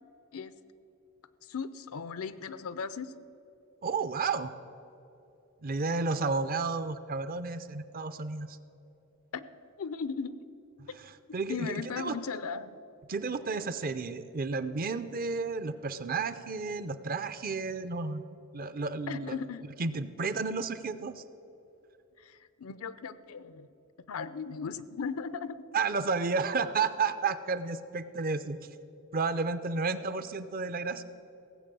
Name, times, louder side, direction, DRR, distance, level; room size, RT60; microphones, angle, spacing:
voice 1, 1.4-3.1 9.3-9.4 9.8-10.3 11.5-12.8 19.1-19.7 22.2-23.7 24.1-25.6, left 5 dB, 75° left, 14 dB, 0.6 m, -37 dB
voice 2, 3.8-4.5 5.6-8.6 11.0-12.2 13.1-18.2 18.5-19.4 19.8-21.2 25.7-28.6 29.1-31.0, right 4 dB, 40° right, 13 dB, 0.5 m, -32 dB
16.5 x 7.8 x 6.8 m, 2.9 s
head